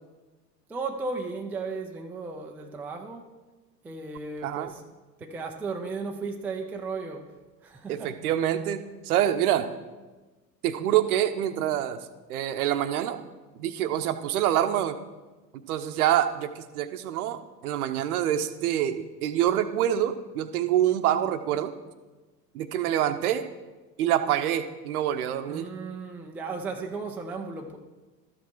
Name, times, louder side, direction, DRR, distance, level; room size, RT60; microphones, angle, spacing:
voice 1, 0.7-3.3 3.8-4.8 5.2-7.3 7.6-8.1 25.5-27.8, right 4 dB, 5° right, 2 dB, 0.4 m, -35 dB
voice 2, 4.4-4.7 7.9-9.7 10.6-12.0 12.3-13.2 13.6-15.0 15.7-21.7 22.5-23.4 24.0-25.7, right 11 dB, 60° right, 10 dB, 0.8 m, -26 dB
13.0 x 5.1 x 4.6 m, 1.2 s
figure-of-eight pair, 85°, 50 cm